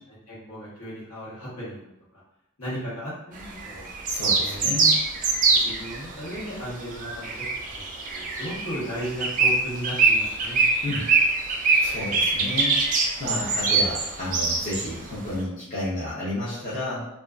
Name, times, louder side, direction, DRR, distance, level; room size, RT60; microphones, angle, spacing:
voice 1, 0.1-1.8 2.1-2.2 2.6-3.9 4.4-4.9 5.5-7.5 7.7-7.8 8.1-10.6, equal, 75° left, -8 dB, 1.2 m, -35 dB
sound 1, 3.4-6.0 6.3-6.5 6.8-14.9, right 4 dB, 35° right, 0.3 m, -23 dB
voice 2, 4.1-4.9 10.8-11.0 11.8-12.8 13.2-17.1, left 1 dB, 35° left, -9 dB, 0.6 m, -31 dB
2.5 x 2.2 x 2.3 m, 0.85 s
head